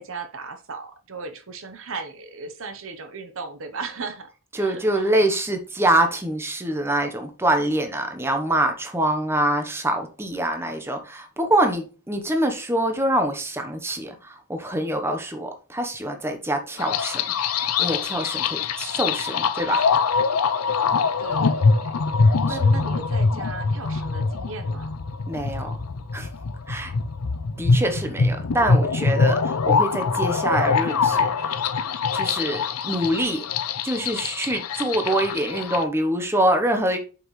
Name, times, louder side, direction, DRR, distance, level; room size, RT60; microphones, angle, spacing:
voice 1, 0.0-4.3 4.6-5.1 21.2-22.0 22.4-24.9, right 4 dB, 60° right, 0.9 m, -36 dB
voice 2, 4.5-17.2 17.8-19.8 22.5-22.6 25.3-25.8 26.1-26.3 26.7-26.9 27.6-31.6 32.1-33.5 33.8-37.0, right 1 dB, 10° right, 0.9 m, -25 dB
sound 1, 16.8-35.8, left 4 dB, 80° left, 0.6 m, -23 dB
7.8 x 5.4 x 3.2 m
head